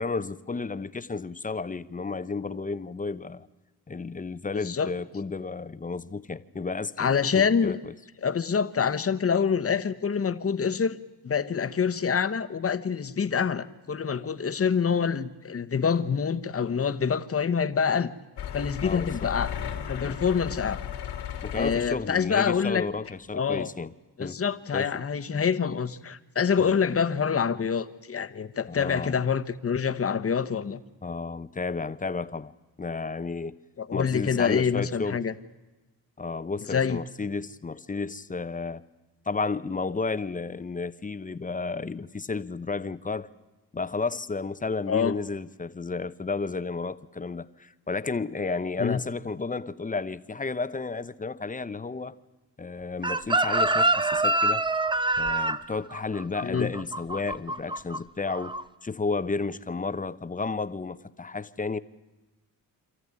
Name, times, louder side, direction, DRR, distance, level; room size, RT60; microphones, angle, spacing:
voice 1, 0.0-3.5 3.9-7.9 18.8-19.3 20.0-20.2 21.4-23.9 24.2-24.4 24.7-25.0 28.7-29.1 31.0-32.5 32.8-33.6 33.9-35.2 36.2-38.8 39.3-43.3 43.7-52.1 52.6-54.6 55.2-58.5 58.8-61.8, left 4 dB, 20° left, 0.8 m, -32 dB
voice 2, 7.0-7.8 8.2-11.0 11.2-18.1 18.5-19.5 19.9-20.8 21.5-22.9 23.3-23.7 24.2-30.8 33.8-35.3 36.7-37.0 44.9-45.1 48.8-49.0 56.4-56.7, left 6 dB, 35° left, 1.2 m, -26 dB
sound 1, 18.4-22.3 23.0-23.2 23.6-23.7, left 9 dB, 85° left, 2.7 m, -35 dB
Chicken rooster, 53.0-58.0 58.3-58.6, right 2 dB, 10° right, 0.8 m, -25 dB
27.0 x 14.0 x 9.7 m
cardioid pair, 100°, 39 cm